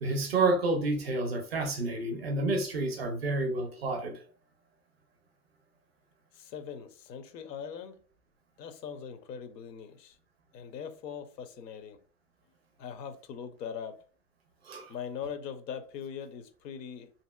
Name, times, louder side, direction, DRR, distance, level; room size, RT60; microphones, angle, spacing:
voice 1, 0.0-4.2 14.6-14.9, right 2 dB, 40° right, 0.4 m, -29 dB
voice 2, 6.3-8.0 8.6-10.2 10.5-12.0 12.8-14.0 14.9-17.1, left 7 dB, 85° left, 0.7 m, -41 dB
2.8 x 2.7 x 2.2 m
supercardioid pair, 175°, 48 cm